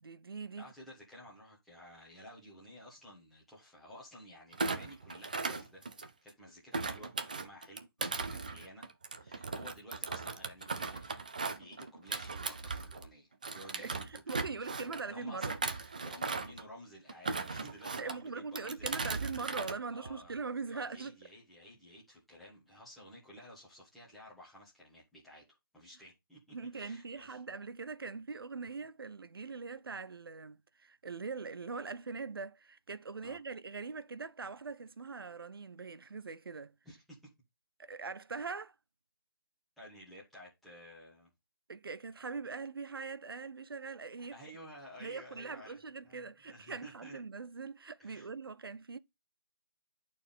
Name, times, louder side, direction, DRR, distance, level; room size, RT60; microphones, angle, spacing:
voice 1, 0.0-0.7 13.8-15.6 18.0-21.2 26.5-36.7 37.8-38.7 41.7-44.4 45.0-49.0, right 4 dB, 70° right, 0.7 m, -42 dB
voice 2, 0.6-5.8 6.2-8.8 9.1-11.1 11.5-19.1 19.9-20.4 20.7-25.4 25.7-27.4 33.2-33.4 36.8-37.2 39.8-41.3 44.3-45.8 46.0-47.2 48.0-48.3, left 1 dB, ahead, 1.5 m, -53 dB
Thump thud, 4.5-6.3 6.7-13.1 13.4-15.0 15.4-16.6 17.1-18.2 18.6-19.8 20.1-20.4, right 4 dB, 20° right, 0.4 m, -38 dB
11.0 x 4.4 x 3.6 m
hypercardioid pair, 175°, 13 cm